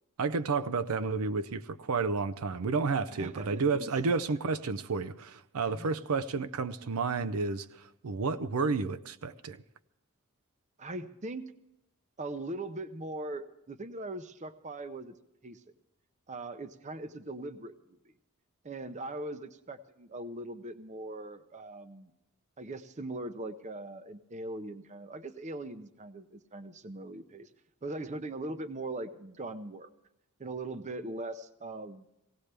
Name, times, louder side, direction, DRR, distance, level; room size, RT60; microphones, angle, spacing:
voice 1, 0.2-9.6, right 4 dB, 85° right, 12 dB, 0.5 m, -31 dB
voice 2, 3.1-4.2 5.7-5.9 10.8-11.5 12.2-15.2 15.4-15.6 16.3-18.1 18.6-22.1 22.6-27.5 27.8-29.9 30.4-32.0, right 2 dB, 35° right, 11 dB, 0.6 m, -40 dB
17.5 x 17.5 x 3.4 m, 0.87 s
head